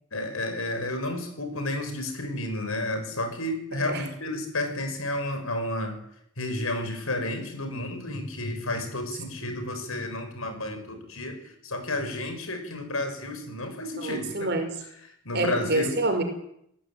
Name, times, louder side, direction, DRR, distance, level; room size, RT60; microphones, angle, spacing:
voice 1, 0.1-6.0 6.4-14.3 15.2-15.9, left 1 dB, 80° left, 6 dB, 6.6 m, -31 dB
voice 2, 3.7-4.0 14.0-14.7 15.3-16.2, right 2 dB, 50° right, 6 dB, 5.2 m, -27 dB
28.0 x 17.5 x 9.3 m, 0.74 s
head